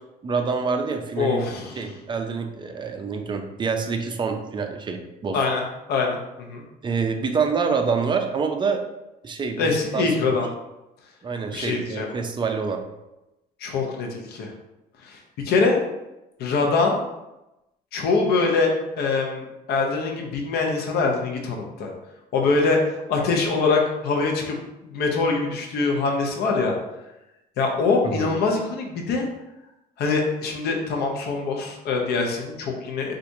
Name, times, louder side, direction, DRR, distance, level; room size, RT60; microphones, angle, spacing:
voice 1, 0.2-1.4 1.8-5.4 6.8-8.8 9.2-10.4 11.2-12.8 28.0-28.3, right 5 dB, 30° right, 4 dB, 0.5 m, -26 dB
voice 2, 1.2-1.8 5.3-5.6 5.9-6.7 9.6-10.5 11.5-12.1 13.6-14.5 15.0-15.8 16.4-17.0 17.9-18.7 19.0-21.9 22.3-24.6 24.8-26.8 27.6-29.2 30.0-33.1, left 4 dB, 70° left, 1 dB, 0.7 m, -23 dB
4.4 x 2.5 x 2.6 m, 0.95 s
cardioid pair, 110°, 17 cm